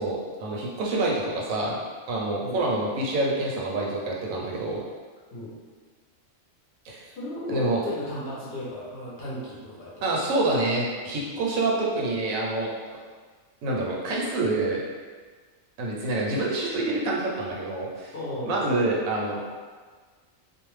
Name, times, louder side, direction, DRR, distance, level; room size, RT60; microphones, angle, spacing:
voice 1, 0.0-1.8 2.1-4.8 6.8-7.1 7.5-7.8 10.0-12.7 13.6-14.8 15.8-18.1 18.4-19.4, right 2 dB, 85° right, -3 dB, 1.0 m, -27 dB
voice 2, 7.0-9.9 18.1-18.6, left 1 dB, 55° left, -7 dB, 0.8 m, -35 dB
2.6 x 2.1 x 3.0 m, 1.5 s
omnidirectional pair, 1.4 m